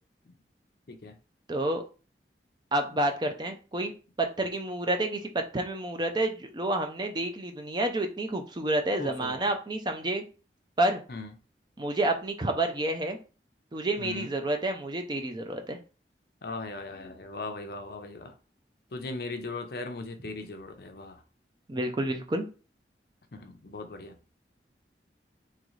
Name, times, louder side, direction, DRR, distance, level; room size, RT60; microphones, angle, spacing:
voice 1, 1.5-1.8 2.7-3.9 4.2-10.2 10.8-11.0 11.8-13.2 13.7-15.8 21.7-22.5, right 1 dB, 25° right, 5 dB, 0.5 m, -29 dB
voice 2, 9.0-9.5 11.1-11.3 14.0-14.3 16.4-18.3 18.9-21.2 23.3-24.2, left 3 dB, 60° left, 6 dB, 0.6 m, -38 dB
3.8 x 3.1 x 3.1 m, 0.35 s
head